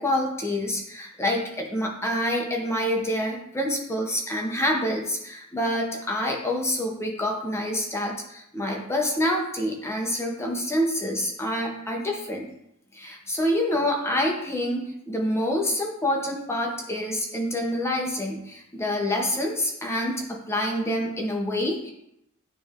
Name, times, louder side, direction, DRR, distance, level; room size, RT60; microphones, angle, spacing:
voice 1, 0.0-12.5 12.9-21.9, left 1 dB, 10° left, 0 dB, 0.8 m, -27 dB
9.2 x 3.3 x 3.6 m, 0.78 s
head